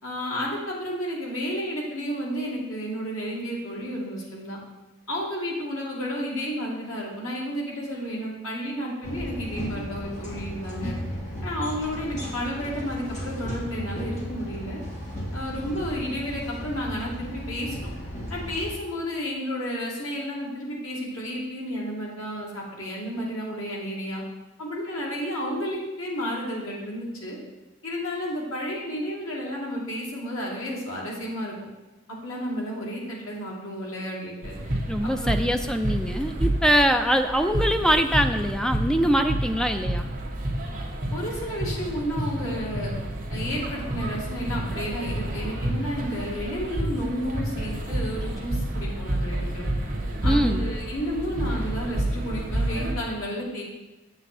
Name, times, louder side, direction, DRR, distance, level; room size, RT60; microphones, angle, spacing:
voice 1, 0.0-4.6 5.1-11.0 11.4-14.8 15.3-17.9 18.3-24.2 24.6-27.4 27.8-31.5 32.1-34.5 35.0-35.4 41.1-42.9 43.3-49.7 50.2-53.6, equal, 80° left, -3 dB, 2.4 m, -32 dB
sound 1, 9.0-18.7, equal, 35° left, 1.6 m, -35 dB
sound 2, 34.4-52.9, right 1 dB, 40° right, 1.3 m, -29 dB
voice 2, 34.9-40.1 50.2-50.7, equal, 5° left, 7 dB, 0.4 m, -23 dB
8.0 x 7.5 x 4.3 m, 1.1 s
head